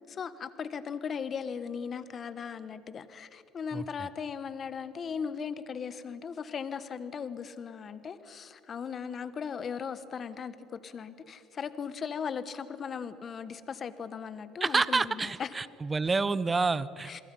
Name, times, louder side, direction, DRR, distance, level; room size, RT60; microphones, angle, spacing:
voice 1, 0.1-15.5 17.0-17.2, left 6 dB, 40° left, 13 dB, 1.3 m, -38 dB
voice 2, 3.7-4.1 14.6-17.2, right 4 dB, 20° right, 18 dB, 0.7 m, -29 dB
28.0 x 22.0 x 5.6 m, 2.7 s
supercardioid pair, 100°, 0 cm